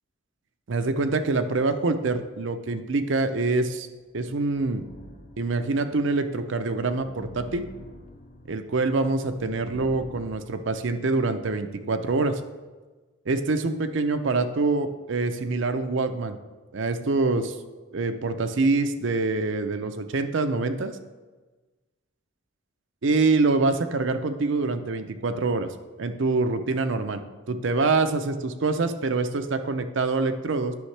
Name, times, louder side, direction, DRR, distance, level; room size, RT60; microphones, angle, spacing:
voice 1, 0.7-3.9 4.1-4.8 5.4-7.6 8.5-12.4 13.3-16.4 16.7-17.5 17.9-21.0 23.0-25.7 26.0-27.2 27.5-30.7, right 3 dB, 60° right, 9 dB, 0.5 m, -25 dB
sound 1, 3.9-10.3, equal, 35° left, 0.7 m, -47 dB
10.0 x 6.3 x 3.3 m, 1.3 s
head